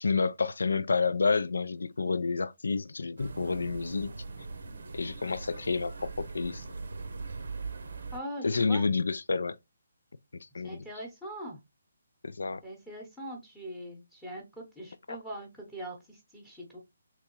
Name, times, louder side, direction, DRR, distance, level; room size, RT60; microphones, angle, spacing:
voice 1, 0.0-4.1 4.9-6.6 8.4-9.6 10.5-10.8 12.2-12.6 15.1-15.2, left 4 dB, 85° left, 0.4 m, -29 dB
sound 1, 3.2-8.2, right 4 dB, 70° right, 0.7 m, -41 dB
voice 2, 8.1-8.8 10.6-11.6 12.6-16.8, right 1 dB, 5° left, 0.8 m, -42 dB
3.5 x 2.9 x 2.9 m
hypercardioid pair, 160°, 0 cm